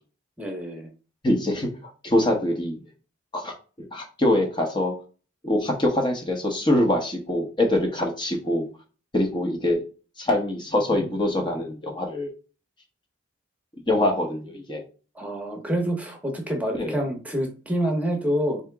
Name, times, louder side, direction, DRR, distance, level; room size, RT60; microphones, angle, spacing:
voice 1, 0.4-0.9 15.1-18.6, equal, 10° right, 2 dB, 1.0 m, -27 dB
voice 2, 1.2-1.7 2.0-2.8 3.3-3.5 3.9-4.9 5.4-8.7 9.1-9.8 10.2-12.3 13.9-14.8 16.8-17.0, left 1 dB, 25° left, 1 dB, 0.9 m, -24 dB
4.3 x 2.9 x 3.4 m, 0.35 s
head